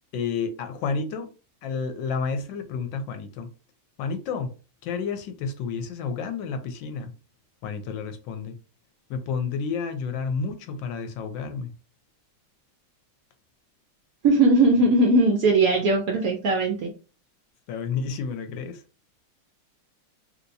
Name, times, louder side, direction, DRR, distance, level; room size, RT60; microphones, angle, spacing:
voice 1, 0.1-1.3 1.6-3.5 4.0-4.5 4.8-7.1 7.6-8.5 9.1-11.7 17.7-18.8, left 5 dB, 75° left, 1.2 m, -30 dB
voice 2, 14.2-16.9, right 2 dB, 80° right, 0.8 m, -19 dB
3.3 x 2.8 x 2.6 m
omnidirectional pair, 2.2 m